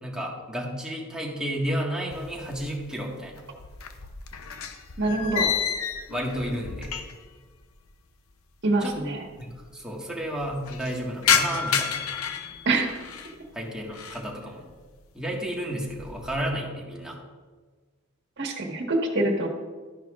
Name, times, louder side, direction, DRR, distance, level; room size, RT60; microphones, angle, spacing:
voice 1, 0.0-3.4 6.1-6.9 8.8-9.0 9.7-12.1 13.5-14.6 15.2-17.2, equal, 5° right, -3 dB, 1.7 m, -32 dB
sound 1, 2.1-3.0 3.3-7.4 7.6-7.7 8.6-8.7 8.9-9.0 9.3-9.7 10.1-13.4 13.8-14.3 14.7-15.1 15.5-16.4, left 7 dB, 85° left, 0.8 m, -30 dB
voice 2, 5.0-5.5 8.6-9.2 12.7-12.9 18.4-19.5, right 2 dB, 55° right, 1 dB, 1.7 m, -25 dB
13.0 x 10.5 x 2.5 m, 1.4 s
head